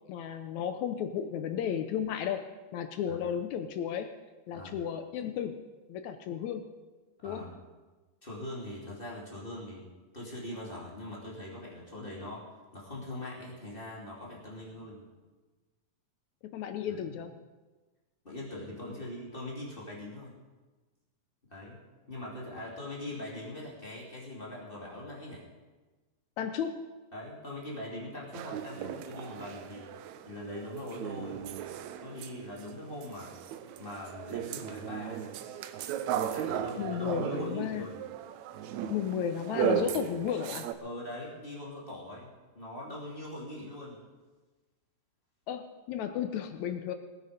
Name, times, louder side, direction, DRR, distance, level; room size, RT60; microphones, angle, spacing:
voice 1, 0.1-2.4 2.7-4.2 4.5-5.6 5.9-6.6 7.2-7.5 16.4-17.3 26.4-26.8 36.8-37.9 38.9-40.7 45.5-46.9, left 9 dB, 75° left, 8 dB, 1.7 m, -33 dB
voice 2, 7.2-7.6 8.2-9.8 10.1-15.1 17.0-17.2 18.2-20.3 21.5-21.8 22.1-25.4 27.1-29.9 30.3-31.4 32.0-33.3 33.8-35.3 36.2-38.0 40.8-44.0, left 1 dB, 15° left, -5 dB, 2.8 m, -42 dB
sound 1, 28.3-32.7 33.0-40.7, right 10 dB, 80° right, 1.7 m, -36 dB
20.0 x 9.2 x 5.2 m, 1.2 s
omnidirectional pair, 3.9 m